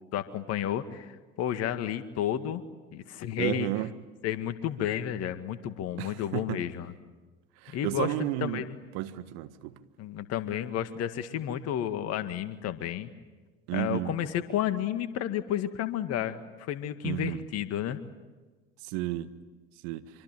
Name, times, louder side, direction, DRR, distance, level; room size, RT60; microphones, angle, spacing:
voice 1, 0.1-2.6 2.9-3.7 4.2-6.9 7.7-8.8 10.0-13.1 13.7-18.0, left 10 dB, 50° left, 2.0 m, -32 dB
voice 2, 3.4-3.9 6.0-6.4 7.6-8.6 8.9-9.7 13.7-14.1 17.0-17.4 18.9-19.3 19.8-20.0, right 15 dB, 60° right, 1.5 m, -32 dB
26.0 x 25.0 x 9.2 m
hypercardioid pair, 70°, 32 cm